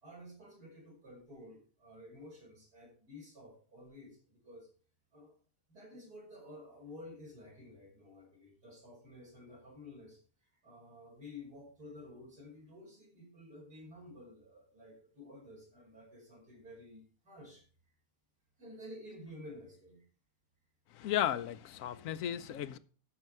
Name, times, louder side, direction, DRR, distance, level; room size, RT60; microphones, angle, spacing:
voice 1, 0.0-4.7 5.1-5.3 5.7-10.2 10.6-17.6 18.6-20.0, left 1 dB, 80° right, 5.7 m, -52 dB
voice 2, 20.9-22.8, left 11 dB, 65° left, 1.0 m, -34 dB
13.0 x 5.4 x 4.6 m
omnidirectional pair, 1.7 m